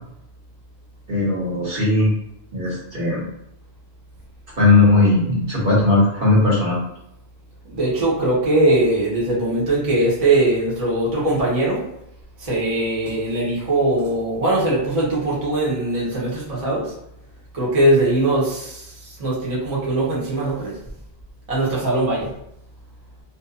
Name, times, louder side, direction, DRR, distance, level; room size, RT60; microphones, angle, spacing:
voice 1, 1.1-2.1 2.5-3.2 4.6-6.8, left 2 dB, 60° right, -6 dB, 1.1 m, -17 dB
voice 2, 7.7-11.8 12.4-16.9 17.5-18.9 19.2-20.7 21.5-22.3, right 2 dB, 35° right, -7 dB, 0.9 m, -20 dB
2.6 x 2.3 x 2.5 m, 0.79 s
omnidirectional pair, 1.1 m